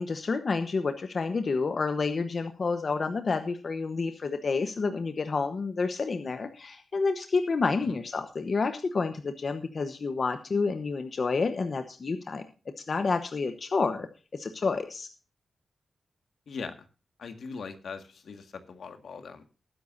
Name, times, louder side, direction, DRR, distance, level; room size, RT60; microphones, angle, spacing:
voice 1, 0.0-12.4 12.9-14.1 14.3-15.1, left 4 dB, 45° left, 8 dB, 1.0 m, -29 dB
voice 2, 17.2-19.5, left 5 dB, 70° left, 8 dB, 1.8 m, -40 dB
19.5 x 10.0 x 2.6 m, 0.34 s
wide cardioid pair, 175°, 0 cm